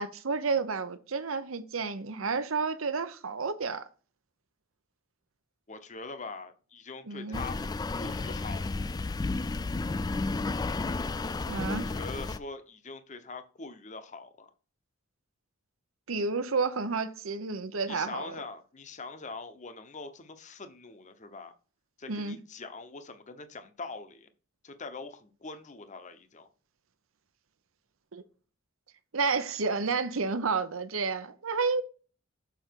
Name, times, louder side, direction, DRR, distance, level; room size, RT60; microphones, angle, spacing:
voice 1, 0.0-3.8 7.1-7.4 11.5-11.9 16.1-18.3 22.1-22.4 28.1-28.2 29.1-31.8, right 4 dB, 80° right, 0.8 m, -30 dB
voice 2, 5.7-7.6 8.0-8.9 11.7-14.5 17.9-21.5 22.0-24.3 24.6-26.5, left 4 dB, 35° left, 0.8 m, -43 dB
sound 1, 7.3-12.4, left 3 dB, 20° left, 0.3 m, -32 dB
7.1 x 5.1 x 4.6 m
head